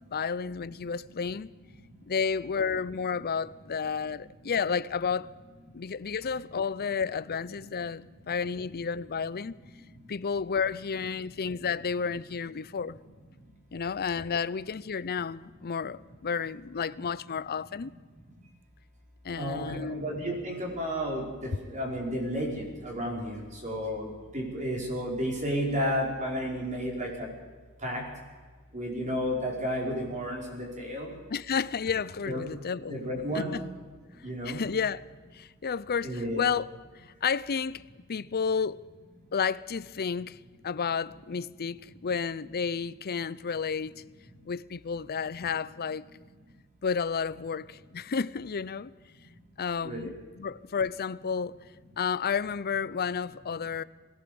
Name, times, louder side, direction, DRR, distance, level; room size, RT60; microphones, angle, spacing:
voice 1, 0.1-1.5 2.1-5.3 5.7-9.5 10.1-13.0 13.7-17.9 19.2-20.0 31.3-33.0 33.3-33.6 34.5-35.0 35.3-36.7 37.0-37.8 38.1-38.9 39.3-40.4 40.6-44.0 44.5-46.0 46.8-48.9 49.6-51.6 52.0-53.8, left 6 dB, 45° left, 0.6 m, -31 dB
voice 2, 19.4-27.3 27.8-28.0 28.7-31.2 32.3-32.4 32.9-33.6 34.2-34.6 36.0-36.4 49.8-50.1, equal, 35° right, 5.1 m, -32 dB
21.5 x 17.5 x 7.0 m
head